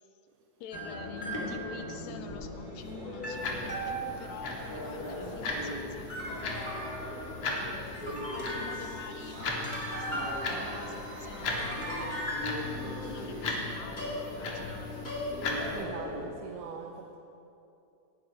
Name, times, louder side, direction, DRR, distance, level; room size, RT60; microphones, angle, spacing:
voice 1, 0.6-7.0 7.7-9.4 9.7-12.3 12.8-15.1, left 7 dB, 80° left, 7 dB, 1.8 m, -47 dB
sound 1, 0.7-16.2, equal, 20° left, 1.6 m, -37 dB
sound 2, 3.4-15.8, left 3 dB, 60° left, 2.2 m, -38 dB
sound 3, 8.6-14.5, right 3 dB, 75° right, 2.8 m, -56 dB
voice 2, 15.7-17.2, right 6 dB, 90° right, 0 dB, 2.3 m, -42 dB
18.5 x 11.0 x 2.9 m, 2.7 s
omnidirectional pair, 3.7 m